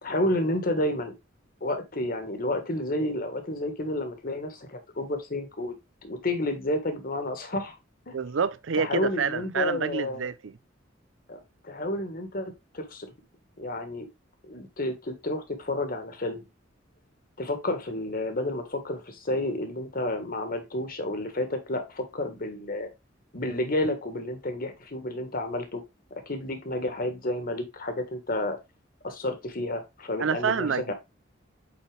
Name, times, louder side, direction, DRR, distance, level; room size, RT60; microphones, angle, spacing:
voice 1, 0.0-1.1 1.6-5.7 6.0-7.8 8.1-8.2 8.8-10.2 11.3-13.1 13.6-14.1 14.4-16.4 17.4-22.9 23.3-25.8 26.3-28.6 29.0-30.9, left 1 dB, 50° left, 1.6 m, -30 dB
voice 2, 8.1-10.6 30.2-30.9, right 6 dB, 85° right, 0.6 m, -28 dB
8.4 x 4.2 x 3.4 m
head